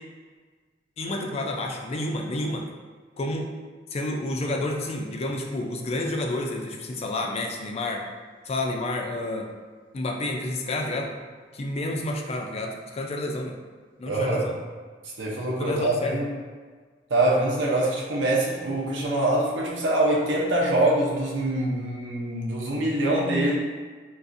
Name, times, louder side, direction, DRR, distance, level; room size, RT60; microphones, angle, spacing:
voice 1, 1.0-2.6 3.2-3.5 3.9-8.0 8.5-9.5 9.9-11.1 11.5-13.6 14.0-14.6 15.6-16.2, left 2 dB, 35° left, 1 dB, 0.4 m, -29 dB
voice 2, 14.1-14.5 15.2-16.3 17.1-23.6, right 1 dB, 75° right, -3 dB, 0.7 m, -24 dB
3.9 x 2.4 x 2.5 m, 1.5 s
head